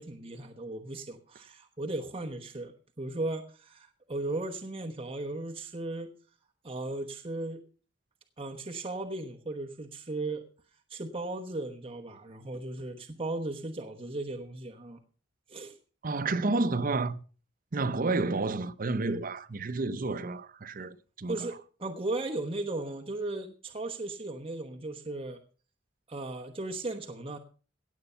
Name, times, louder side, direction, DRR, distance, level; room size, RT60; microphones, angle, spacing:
voice 1, 0.0-6.1 6.6-7.6 8.4-10.4 10.9-15.0 15.5-15.8 21.3-25.4 26.1-27.4, right 2 dB, 30° right, 1.1 m, -36 dB
voice 2, 16.0-17.2 17.7-21.5, right 3 dB, 50° right, 0.7 m, -30 dB
17.0 x 8.1 x 5.6 m
head